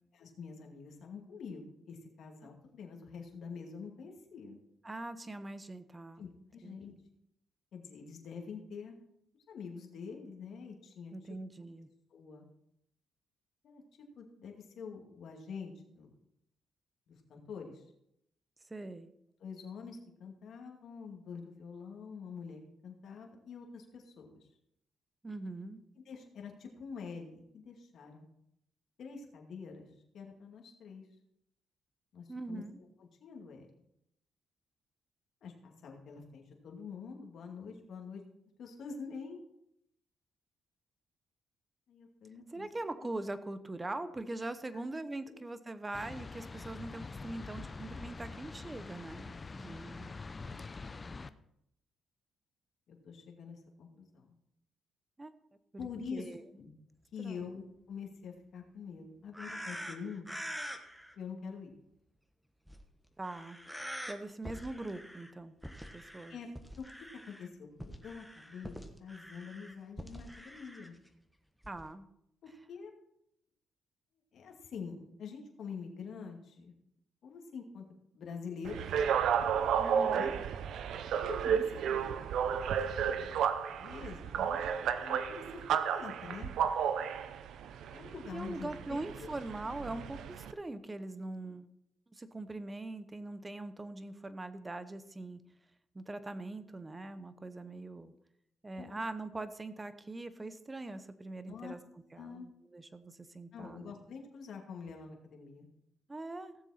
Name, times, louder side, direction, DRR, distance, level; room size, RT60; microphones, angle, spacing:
voice 1, 0.1-4.6 6.2-6.9 7.7-9.0 9.5-11.1 12.1-12.5 13.6-13.8 14.2-16.1 17.1-17.8 19.4-24.5 26.1-28.3 29.0-31.1 32.1-32.6 33.0-33.7 35.4-38.2 38.6-39.4 41.9-42.7 44.7-44.8 49.2-49.3 50.5-51.0 52.9-54.3 55.8-56.7 57.1-60.3 61.2-61.8 66.3-66.5 66.8-66.9 67.3-71.0 72.4-72.9 74.3-76.7 77.2-77.8 78.1-79.0 80.1-80.4 81.2-82.1 82.8-83.3 83.7-84.7 85.0-86.5 87.9-89.3 98.8-99.0 101.5-101.8 102.2-102.5 103.5-105.7, left 5 dB, 65° left, 1 dB, 2.4 m, -46 dB
voice 2, 4.8-6.3 6.6-7.0 11.1-11.9 18.7-19.1 25.2-25.8 32.3-32.8 42.5-50.1 55.2-55.3 55.7-56.5 57.2-57.5 63.2-63.6 64.1-65.5 65.9-66.4 71.7-72.1 79.8-80.3 88.3-91.7 92.1-95.4 95.9-98.1 98.6-101.8 102.1-103.9 106.1-106.5, right 2 dB, 20° right, 12 dB, 0.9 m, -42 dB
sound 1, 45.9-51.3, left 4 dB, 30° left, 0.6 m, -45 dB
sound 2, 59.3-61.1 62.7-62.8 63.2-64.1 64.4-65.3 65.6-67.5 67.8-70.9 71.6-71.9, equal, ahead, 1.2 m, -45 dB
sound 3, 78.6-90.5, right 8 dB, 75° right, 0.7 m, -32 dB
16.5 x 7.2 x 4.3 m, 0.78 s
cardioid pair, 90°, 0 cm